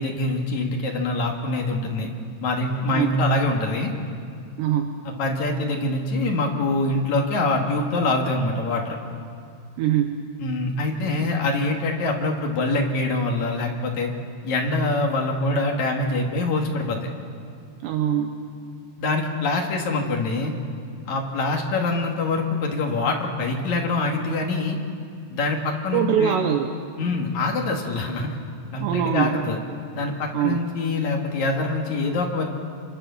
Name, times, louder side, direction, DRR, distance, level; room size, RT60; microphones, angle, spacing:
voice 1, 0.0-2.1 2.4-3.9 5.0-9.0 10.4-14.1 14.4-17.0 19.0-20.5 21.1-24.8 25.3-26.4 27.0-28.3 28.7-29.6 29.9-32.4, left 2 dB, 50° left, 1 dB, 2.7 m, -24 dB
voice 2, 2.9-3.2 4.6-4.9 9.8-10.2 17.8-18.4 25.9-26.7 28.8-29.4 30.3-30.6, right 10 dB, 75° right, 5 dB, 2.9 m, -23 dB
27.0 x 22.0 x 7.1 m, 2.3 s
omnidirectional pair, 5.5 m